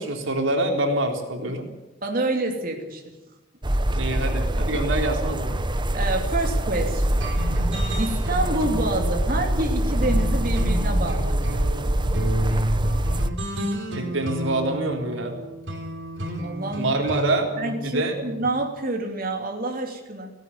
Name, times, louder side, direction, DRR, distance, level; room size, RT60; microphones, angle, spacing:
voice 1, 0.0-1.7 3.9-5.6 13.9-15.4 16.8-17.5 17.8-18.2, right 2 dB, 85° right, 3 dB, 3.9 m, -25 dB
voice 2, 2.0-3.1 5.9-7.2 8.0-11.4 16.4-16.9 17.6-20.3, right 2 dB, 50° right, 2 dB, 3.0 m, -27 dB
sound 1, 3.6-13.3, right 1 dB, 25° right, 1.0 m, -24 dB
sound 2, 7.2-18.5, equal, 70° right, 4.2 m, -31 dB
17.5 x 17.0 x 9.6 m, 1.0 s
head